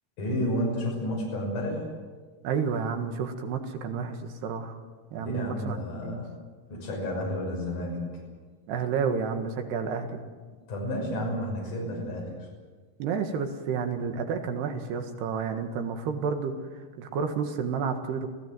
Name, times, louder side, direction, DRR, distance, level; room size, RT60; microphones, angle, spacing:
voice 1, 0.2-1.8 5.2-6.3 6.7-8.1 10.7-12.3, left 1 dB, 50° left, -2 dB, 7.6 m, -31 dB
voice 2, 2.4-4.8 5.1-6.2 8.7-10.2 13.0-16.6 17.0-18.3, right 6 dB, 85° right, 6 dB, 3.8 m, -30 dB
28.0 x 16.0 x 7.8 m, 1.4 s
omnidirectional pair, 4.6 m